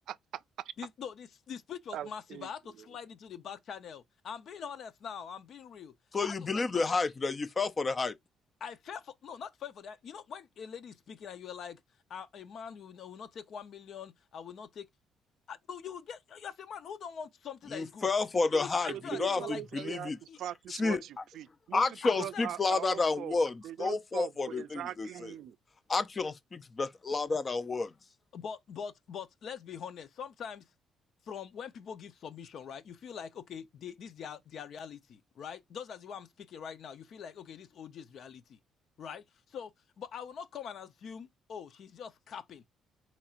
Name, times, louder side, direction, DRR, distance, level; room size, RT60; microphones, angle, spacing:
voice 1, 0.1-0.7 1.9-2.5 2.8-2.9 18.9-23.3 23.6-25.6, right 11 dB, 75° right, 0.4 m, -41 dB
voice 2, 0.8-5.9 6.2-6.8 8.6-11.8 12.1-14.9 15.5-18.1 18.5-19.6 20.3-20.4 22.0-22.4 28.3-30.6 31.3-38.6 39.0-39.7 40.0-42.6, left 7 dB, 60° left, 0.7 m, -43 dB
voice 3, 6.1-8.1 17.7-18.9 19.2-20.2 20.8-21.0 21.7-25.3 25.9-27.9, left 3 dB, 30° left, 0.5 m, -30 dB
4.4 x 4.3 x 2.5 m
cardioid pair, 115°, 0 cm